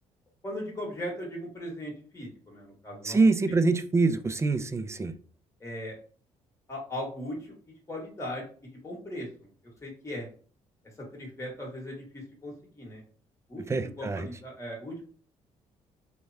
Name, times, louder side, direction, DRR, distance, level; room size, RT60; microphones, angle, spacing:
voice 1, 0.4-3.3 5.6-6.0 6.7-7.6 7.9-8.4 8.7-9.3 9.8-10.3 11.0-13.0 13.5-13.6 14.0-15.0, left 1 dB, 20° left, -2 dB, 1.5 m, -38 dB
voice 2, 3.0-5.1 13.7-14.3, right 3 dB, 20° right, 11 dB, 0.3 m, -25 dB
3.0 x 2.1 x 2.7 m, 0.43 s
hypercardioid pair, 55°, 14 cm